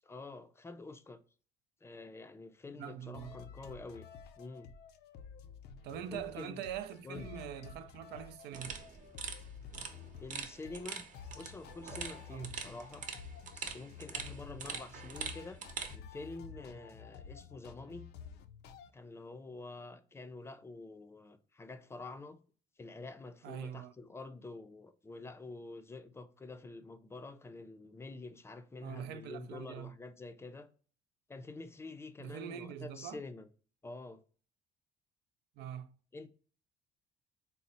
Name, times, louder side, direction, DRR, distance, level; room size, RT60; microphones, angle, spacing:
voice 1, 0.0-1.2 1.8-4.1 4.4-4.7 6.1-6.6 7.0-7.3 10.2-11.1 11.3-13.1 13.5-18.1 18.9-22.4 22.8-30.7 31.3-33.5 33.8-34.2 36.1-36.3, left 3 dB, 15° left, 0.4 m, -47 dB
voice 2, 2.7-3.4 5.8-8.8 12.3-12.5 23.4-23.9 28.8-29.9 32.2-33.2 35.6-35.9, right 9 dB, 80° right, 0.4 m, -43 dB
sound 1, 3.1-18.9, left 7 dB, 75° left, 0.5 m, -51 dB
sound 2, 8.5-15.9, right 5 dB, 50° right, 0.8 m, -44 dB
4.0 x 2.0 x 4.0 m
cardioid pair, 110°, 17 cm